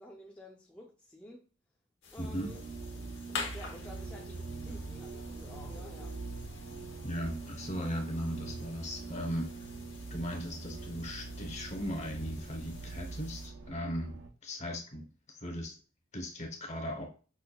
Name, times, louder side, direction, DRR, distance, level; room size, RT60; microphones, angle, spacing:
voice 1, 0.0-1.5 2.1-2.6 3.5-6.2, left 1 dB, 5° left, 0.4 m, -51 dB
sound 1, 2.0-13.5, left 4 dB, 85° left, 0.9 m, -48 dB
voice 2, 2.2-2.5 7.0-9.6 10.1-15.7 16.1-17.1, equal, 40° left, 0.9 m, -38 dB
sound 2, 2.2-14.3, right 3 dB, 85° right, 0.5 m, -43 dB
5.5 x 2.1 x 2.2 m
head